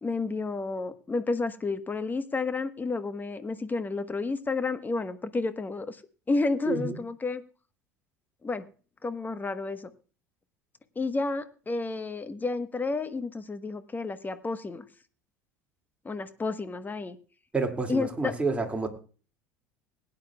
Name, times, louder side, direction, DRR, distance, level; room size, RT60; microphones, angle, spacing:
voice 1, 0.0-6.0 6.3-7.4 8.4-8.7 9.0-9.9 10.9-14.8 16.0-17.2 17.9-18.3, left 3 dB, 20° left, 11 dB, 1.2 m, -31 dB
voice 2, 6.7-7.0 17.5-18.9, right 3 dB, 15° right, 3 dB, 2.3 m, -29 dB
21.0 x 10.0 x 2.3 m, 0.37 s
hypercardioid pair, 75°, 9 cm